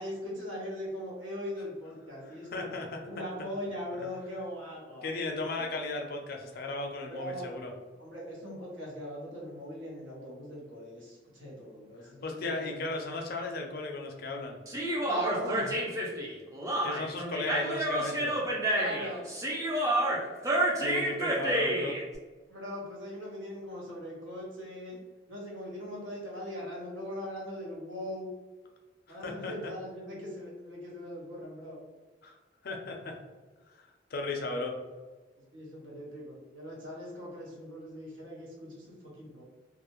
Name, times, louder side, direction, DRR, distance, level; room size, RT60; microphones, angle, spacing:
voice 1, 0.0-2.7 3.0-5.1 7.1-7.6 8.0-12.9 15.0-15.8 18.7-19.3 22.5-25.0 25.3-28.3 29.1-31.8 35.5-38.9 39.2-39.4, equal, 85° right, -4 dB, 0.9 m, -40 dB
voice 2, 2.2-3.1 5.0-7.7 12.0-14.6 16.8-18.3 20.4-22.0 29.1-29.5 32.2-32.3 32.6-33.2 33.7-33.8 34.1-34.8, left 2 dB, 55° left, 2 dB, 0.4 m, -36 dB
Human voice, 14.7-22.0, right 1 dB, 15° right, 0.4 m, -29 dB
2.3 x 2.0 x 2.9 m, 1.3 s
head